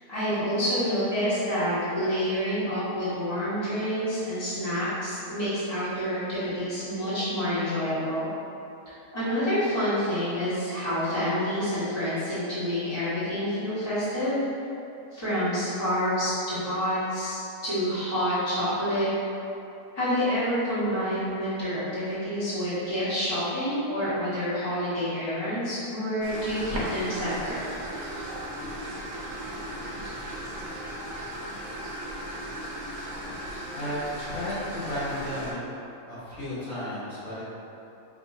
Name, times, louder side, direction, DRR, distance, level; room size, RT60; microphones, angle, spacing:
voice 1, 0.1-8.3 9.1-14.4 15.1-19.1 19.9-27.6, equal, 20° left, -14 dB, 1.4 m, -28 dB
sound 1, 26.2-35.5, right 1 dB, 70° right, 1.1 m, -36 dB
voice 2, 33.7-35.7 36.1-37.4, left 1 dB, 70° left, -13 dB, 1.8 m, -33 dB
5.3 x 2.6 x 2.6 m, 2.8 s
omnidirectional pair, 1.5 m